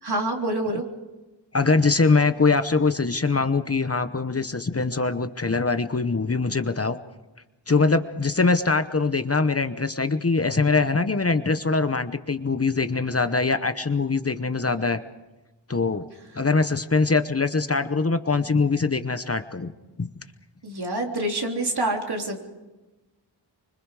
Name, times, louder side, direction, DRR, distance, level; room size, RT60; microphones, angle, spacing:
voice 1, 0.0-0.8 20.6-22.4, right 1 dB, 60° right, 1 dB, 3.4 m, -27 dB
voice 2, 1.5-7.0 7.7-15.0 15.7-16.1 16.4-19.7 20.0-20.1, left 4 dB, 35° left, 10 dB, 1.0 m, -23 dB
25.5 x 25.0 x 4.9 m, 1.1 s
wide cardioid pair, 95°, 44 cm